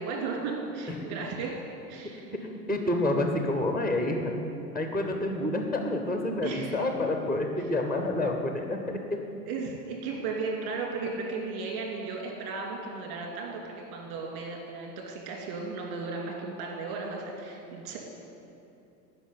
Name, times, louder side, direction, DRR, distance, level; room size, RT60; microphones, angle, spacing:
voice 1, 0.0-1.5 1.9-2.3 6.4-6.8 9.5-18.0, right 4 dB, 55° right, 0 dB, 2.8 m, -35 dB
voice 2, 0.9-1.2 2.4-4.3 4.7-8.8, left 1 dB, ahead, 4 dB, 0.3 m, -28 dB
10.0 x 5.7 x 8.5 m, 2.7 s
hypercardioid pair, 95°, 50 cm